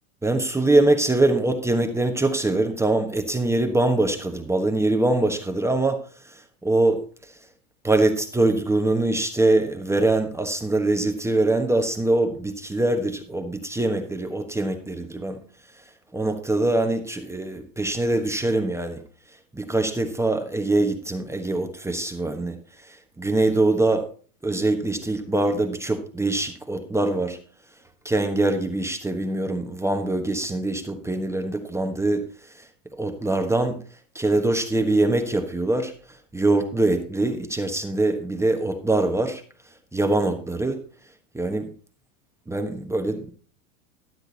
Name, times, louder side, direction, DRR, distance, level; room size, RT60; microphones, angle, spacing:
voice 1, 0.2-6.0 6.6-7.0 7.8-15.4 16.1-19.0 19.5-22.6 23.2-24.0 24.4-27.4 28.0-32.2 33.0-33.8 34.1-35.9 36.3-39.4 39.9-40.8 41.3-41.7 42.5-43.3, right 2 dB, 5° right, 5 dB, 1.2 m, -23 dB
12.5 x 7.8 x 4.1 m, 0.41 s
hypercardioid pair, 105°, 42 cm